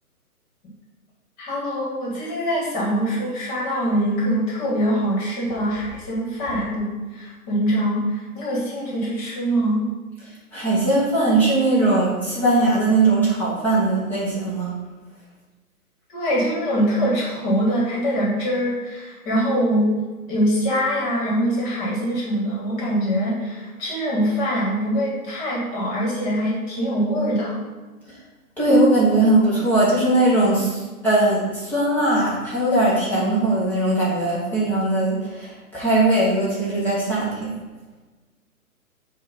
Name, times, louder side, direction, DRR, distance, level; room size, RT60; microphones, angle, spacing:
voice 1, 1.4-9.8 16.1-19.9 20.3-27.6, equal, 20° left, -5 dB, 1.7 m, -23 dB
voice 2, 10.2-14.7 28.1-28.2 28.6-37.5, right 2 dB, 5° left, -10 dB, 1.1 m, -20 dB
8.0 x 2.8 x 5.2 m, 1.3 s
hypercardioid pair, 145°, 44 cm